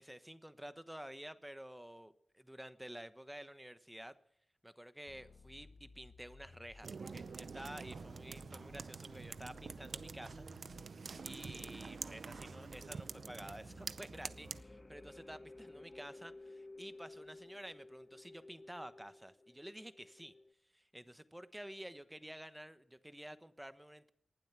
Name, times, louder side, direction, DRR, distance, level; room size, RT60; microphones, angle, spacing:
voice 1, 0.0-4.1 4.6-10.5 11.2-20.3 20.7-24.1, equal, 5° right, 1.1 m, -51 dB
sound 1, 5.1-13.1, left 3 dB, 60° left, 0.8 m, -59 dB
sound 2, 6.8-14.6, right 5 dB, 70° right, 0.6 m, -47 dB
sound 3, 10.9-20.5, left 2 dB, 30° left, 1.2 m, -56 dB
19.5 x 12.0 x 6.0 m
cardioid pair, 55°, 0 cm